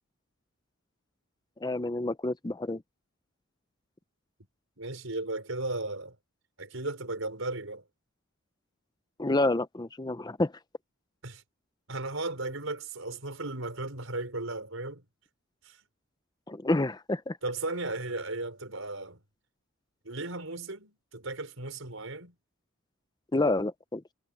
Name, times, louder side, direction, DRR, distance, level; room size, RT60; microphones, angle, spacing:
voice 1, 1.6-2.8 9.2-10.5 16.5-17.4 23.3-24.0, left 2 dB, 20° left, 0.7 m, -28 dB
voice 2, 4.8-6.1 6.6-7.8 11.2-11.4 11.9-15.0 15.6-15.8 17.4-19.2 20.0-22.3, right 2 dB, 75° right, 5.2 m, -35 dB
head